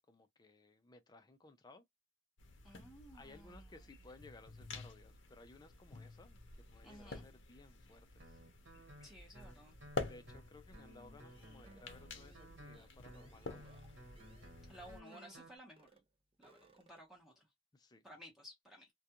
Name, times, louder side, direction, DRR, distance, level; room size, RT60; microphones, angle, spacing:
voice 1, 0.0-1.8 3.1-6.4 6.7-8.4 10.1-13.8 17.7-18.0, left 2 dB, 20° left, 0.4 m, -59 dB
sound 1, 2.4-15.0, left 3 dB, 65° left, 0.7 m, -50 dB
voice 2, 2.6-3.9 6.8-7.3 9.0-9.8 14.7-16.0 16.4-17.5 18.0-18.9, equal, ahead, 0.8 m, -56 dB
Guitar, 8.2-15.6, equal, 60° right, 1.2 m, -58 dB
sound 2, 11.3-15.5 15.8-16.1 16.3-17.2, right 3 dB, 30° right, 0.5 m, -67 dB
2.3 x 2.2 x 2.8 m
head